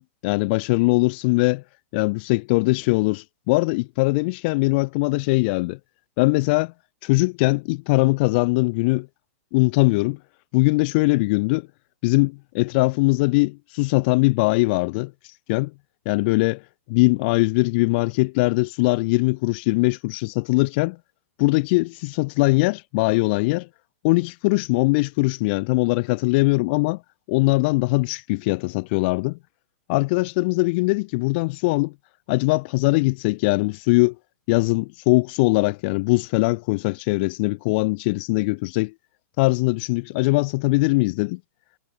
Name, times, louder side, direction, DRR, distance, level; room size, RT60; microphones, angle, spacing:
voice 1, 0.0-1.6 1.9-5.8 6.2-6.7 7.0-9.1 9.5-10.2 10.5-11.7 12.0-15.7 16.0-16.6 16.9-21.0 21.4-23.7 24.0-27.0 27.3-29.4 29.9-31.9 32.3-34.1 34.5-38.9 39.4-41.4, left 25 dB, 45° left, 1.0 m, -21 dB
hypercardioid pair, 130°, 8 cm